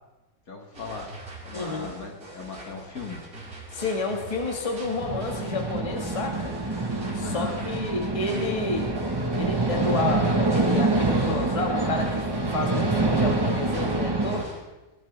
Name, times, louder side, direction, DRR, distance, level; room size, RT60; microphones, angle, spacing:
voice 1, 0.5-1.1 1.4-3.2 7.2-7.6, left 4 dB, 55° left, 1 dB, 2.3 m, -38 dB
sound 1, 0.7-14.6, right 2 dB, 55° right, 5.0 m, -41 dB
voice 2, 1.5-1.9 3.7-6.5 7.1-8.9 9.4-12.2 12.5-14.5, left 2 dB, 20° left, 1 dB, 1.7 m, -30 dB
sound 2, 5.0-14.4, right 2 dB, 15° right, 1.0 m, -26 dB
20.0 x 14.0 x 3.4 m, 1.1 s
omnidirectional pair, 1.9 m